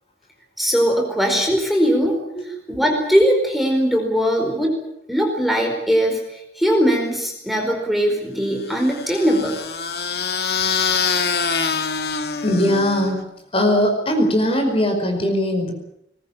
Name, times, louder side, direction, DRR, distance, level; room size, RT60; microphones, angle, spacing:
voice 1, 0.6-2.2 2.5-4.8 5.1-9.6, equal, ahead, 2 dB, 4.7 m, -20 dB
sound 1, 8.7-13.2, left 5 dB, 65° left, 2.2 m, -24 dB
voice 2, 12.4-13.2 13.5-15.7, left 1 dB, 35° left, 4 dB, 5.1 m, -19 dB
22.0 x 20.5 x 8.7 m, 0.78 s
head